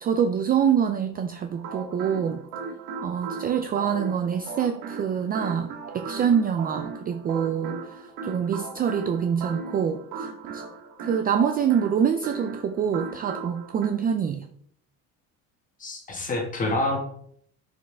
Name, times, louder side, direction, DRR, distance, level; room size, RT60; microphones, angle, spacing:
voice 1, 0.0-2.4 3.0-10.3 10.5-10.6 11.0-14.4, right 7 dB, 25° right, 7 dB, 0.3 m, -25 dB
sound 1, 1.5-13.9, right 4 dB, 70° right, 1.6 m, -37 dB
voice 2, 15.8-17.0, left 2 dB, 20° left, 2 dB, 1.6 m, -27 dB
10.5 x 5.4 x 3.3 m, 0.65 s
cardioid pair, 170°, 37 cm